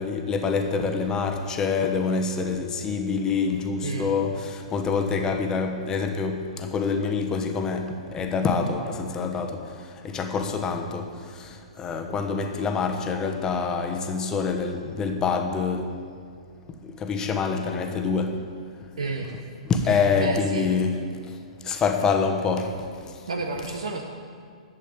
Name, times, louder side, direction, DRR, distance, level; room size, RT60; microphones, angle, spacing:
voice 1, 0.0-9.6 10.0-11.1 11.8-15.9 17.0-18.4 19.7-21.0 21.7-22.7, left 5 dB, 20° left, 1.2 m, -26 dB
voice 2, 3.8-4.1 19.0-19.3 19.9-20.7 23.3-24.0, right 3 dB, 65° right, 1.2 m, -31 dB
11.5 x 8.3 x 8.6 m
figure-of-eight pair, 115°, 4 cm